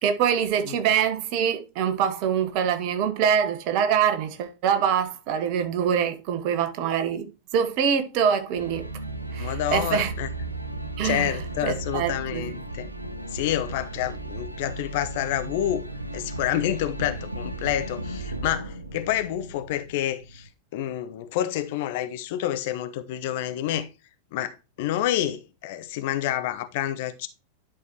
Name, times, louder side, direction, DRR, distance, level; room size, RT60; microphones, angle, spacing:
voice 1, 0.0-8.9 9.3-10.1 11.0-11.4 11.6-12.4, right 8 dB, 45° right, 1.2 m, -24 dB
sound 1, 8.5-20.5, right 2 dB, 85° right, 0.7 m, -35 dB
voice 2, 9.4-10.3 11.0-12.9 13.3-15.8 16.1-23.9 24.3-27.3, left 12 dB, 50° left, 0.8 m, -28 dB
11.0 x 4.7 x 2.9 m
figure-of-eight pair, 90°, 0 cm